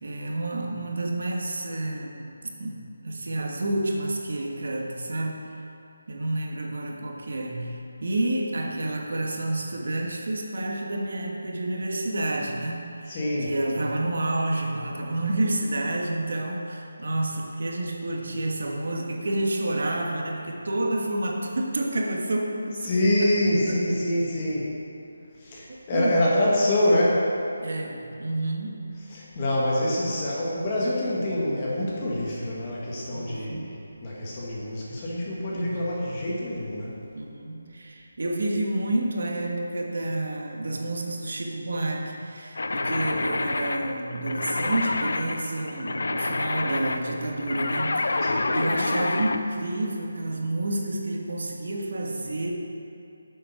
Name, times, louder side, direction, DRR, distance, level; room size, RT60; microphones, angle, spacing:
voice 1, 0.0-5.4 6.1-22.9 23.2-23.3 23.7-24.0 25.9-26.3 27.6-28.8 33.1-33.7 35.5-36.0 37.1-52.5, right 1 dB, 55° right, 1 dB, 1.3 m, -29 dB
voice 2, 13.1-13.5 22.9-24.6 25.4-27.3 29.1-33.7 34.0-36.9 48.2-48.5, left 1 dB, 20° left, -5 dB, 1.4 m, -25 dB
sound 1, 42.5-49.4, left 2 dB, 65° left, 0.6 m, -28 dB
9.1 x 7.4 x 5.8 m, 2.8 s
figure-of-eight pair, 180°, 0 cm